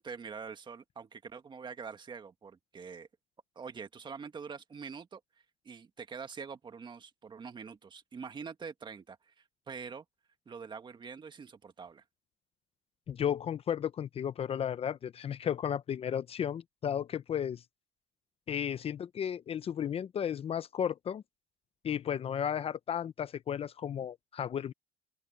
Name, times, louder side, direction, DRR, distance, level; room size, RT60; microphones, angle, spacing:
voice 1, 0.0-3.1 3.6-5.2 5.6-10.0 10.5-12.0, right 5 dB, 30° right, 2.0 m, -45 dB
voice 2, 13.1-17.6 18.5-21.2 21.8-24.7, left 9 dB, 40° left, 0.7 m, -34 dB
open air
cardioid pair, 110°, 16 cm